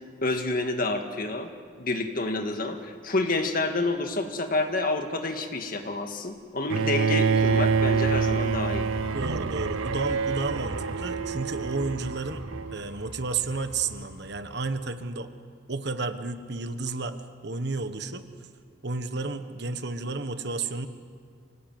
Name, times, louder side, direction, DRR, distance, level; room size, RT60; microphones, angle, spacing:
voice 1, 0.2-1.5 1.8-8.9, left 2 dB, 45° left, 5 dB, 1.9 m, -28 dB
Bowed string instrument, 6.7-12.8, right 5 dB, 90° right, 0.5 m, -26 dB
sound 1, 7.0-14.7, left 1 dB, 85° left, 4.1 m, -40 dB
voice 2, 9.1-12.4 12.7-15.3 15.7-17.2 17.4-18.2 18.8-20.9, right 3 dB, 55° right, 9 dB, 1.3 m, -32 dB
25.0 x 18.5 x 9.4 m, 2.1 s
head